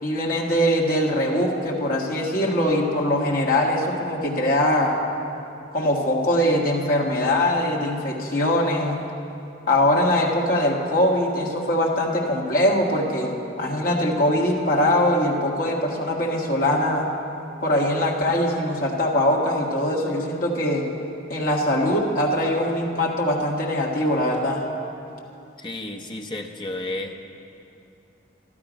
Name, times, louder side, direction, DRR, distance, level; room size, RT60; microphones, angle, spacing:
voice 1, 0.0-5.0 5.7-9.0 9.7-17.1 17.6-20.9 21.3-24.6, left 1 dB, 45° left, -2 dB, 1.5 m, -22 dB
voice 2, 25.6-27.2, left 2 dB, 25° left, 3 dB, 0.7 m, -32 dB
12.5 x 12.5 x 5.1 m, 2.7 s
head